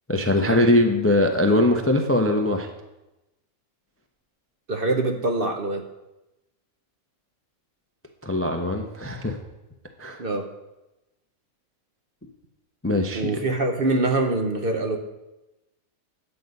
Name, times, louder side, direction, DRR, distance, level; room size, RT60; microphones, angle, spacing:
voice 1, 0.1-2.7 8.2-9.4 10.0-10.2 12.8-13.3, left 1 dB, 15° left, 4 dB, 0.5 m, -21 dB
voice 2, 4.7-5.8 10.2-10.5 13.1-15.0, right 2 dB, 45° right, 4 dB, 0.9 m, -24 dB
9.9 x 7.9 x 5.3 m, 0.99 s
omnidirectional pair, 1.5 m